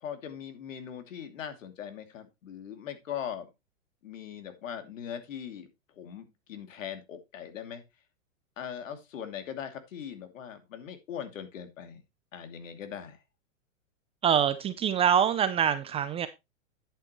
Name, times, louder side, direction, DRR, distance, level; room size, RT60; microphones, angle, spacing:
voice 1, 0.0-3.5 4.0-5.7 5.9-7.8 8.6-12.0 12.3-13.2, left 8 dB, 70° left, 7 dB, 2.7 m, -40 dB
voice 2, 14.2-16.3, right 8 dB, 15° right, 12 dB, 0.5 m, -25 dB
10.5 x 9.0 x 3.1 m, 0.23 s
hypercardioid pair, 130°, 40 cm